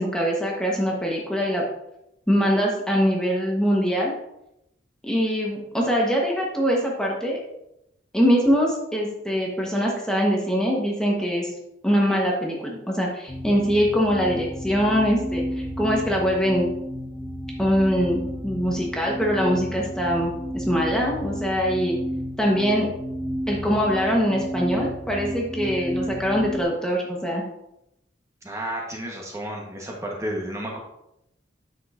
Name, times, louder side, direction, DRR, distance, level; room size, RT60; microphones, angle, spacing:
voice 1, 0.0-1.6 2.3-4.1 5.0-7.4 8.1-11.5 11.8-16.7 17.6-22.0 22.4-22.9 23.5-27.4, equal, 5° left, -2 dB, 1.1 m, -23 dB
sound 1, 13.3-26.6, equal, 30° left, 0.8 m, -32 dB
voice 2, 28.4-30.8, right 1 dB, 15° right, -1 dB, 1.1 m, -32 dB
8.6 x 6.1 x 2.5 m, 0.83 s
head